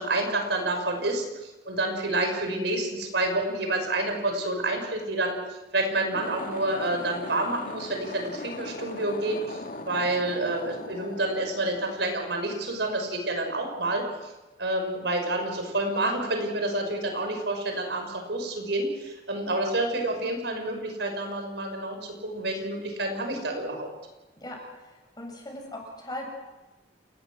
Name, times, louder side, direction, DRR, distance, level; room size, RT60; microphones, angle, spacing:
voice 1, 0.0-5.4 5.7-14.3 14.6-23.9, right 2 dB, 70° right, 4 dB, 5.8 m, -28 dB
sound 1, 6.0-12.5, left 2 dB, 50° left, 1.8 m, -40 dB
voice 2, 24.8-26.2, left 1 dB, 25° left, 1 dB, 7.7 m, -39 dB
29.0 x 20.5 x 6.4 m, 1.1 s
head